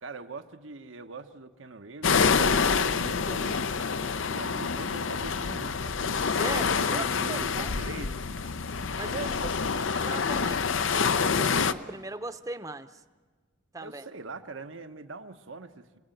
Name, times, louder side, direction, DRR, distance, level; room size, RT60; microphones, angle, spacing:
voice 1, 0.0-3.6 4.3-5.9 6.9-8.2 8.7-9.6 13.8-16.0, right 3 dB, 85° right, 8 dB, 1.2 m, -42 dB
sound 1, 2.0-11.7, left 5 dB, 85° left, 0.7 m, -27 dB
voice 2, 6.3-7.7 9.0-9.5 9.9-10.6 11.1-13.0 13.7-14.1, right 2 dB, 15° right, 11 dB, 0.7 m, -39 dB
27.5 x 18.5 x 9.2 m, 1.4 s
head